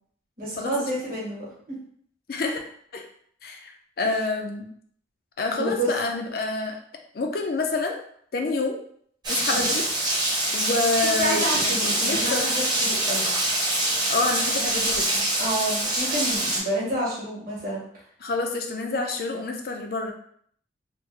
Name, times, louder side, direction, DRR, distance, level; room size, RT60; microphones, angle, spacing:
voice 1, 0.4-1.8 5.5-5.9 11.2-13.3 15.4-17.8, right 1 dB, 50° right, -5 dB, 1.2 m, -29 dB
voice 2, 2.3-2.6 2.9-3.0 3.4-3.7 4.0-4.7 5.4-6.8 7.1-8.0 8.3-8.8 9.3-9.9 10.5-12.5 14.1-15.2 18.2-20.1, left 3 dB, 50° left, 3 dB, 0.4 m, -27 dB
Rain, 9.2-16.6, right 1 dB, 25° right, 0.7 m, -25 dB
3.2 x 2.1 x 3.2 m, 0.63 s
head